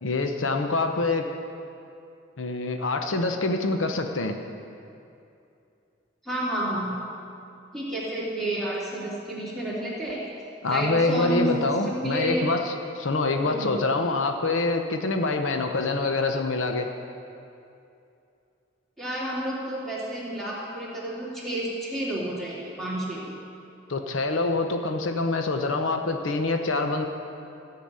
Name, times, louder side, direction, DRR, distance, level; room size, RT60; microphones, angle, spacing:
voice 1, 0.0-1.3 2.4-4.4 10.6-16.9 23.9-27.1, left 3 dB, 85° left, 5 dB, 0.8 m, -25 dB
voice 2, 6.2-7.0 7.7-10.2 10.7-12.4 13.4-13.8 19.0-23.3, right 1 dB, ahead, -8 dB, 3.0 m, -30 dB
14.0 x 5.9 x 8.8 m, 2.6 s
head